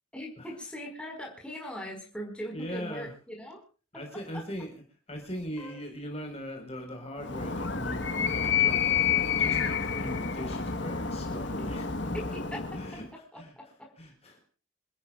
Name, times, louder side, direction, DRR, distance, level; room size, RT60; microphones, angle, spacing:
voice 1, 0.1-3.6 3.9-4.0 5.6-5.8 12.1-12.8 13.3-13.9, equal, 5° left, 0 dB, 4.9 m, -40 dB
voice 2, 2.5-3.1 3.9-4.8 5.1-12.3 12.7-13.5 14.0-14.4, equal, 30° left, 3 dB, 4.6 m, -40 dB
Animal, 7.2-13.1, left 7 dB, 60° left, 1.4 m, -29 dB
28.0 x 14.0 x 2.4 m, 0.38 s
head